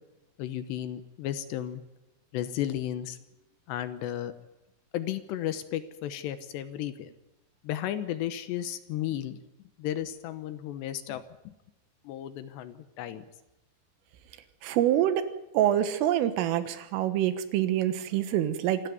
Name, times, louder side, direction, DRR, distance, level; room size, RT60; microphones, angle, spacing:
voice 1, 0.4-1.8 2.3-3.2 3.7-4.3 4.9-7.1 7.6-9.4 9.8-11.5 12.1-13.2, left 11 dB, 75° left, 11 dB, 2.8 m, -34 dB
voice 2, 14.6-15.2 15.5-18.8, right 11 dB, 80° right, 11 dB, 3.9 m, -26 dB
26.5 x 13.5 x 9.4 m, 0.92 s
omnidirectional pair, 5.9 m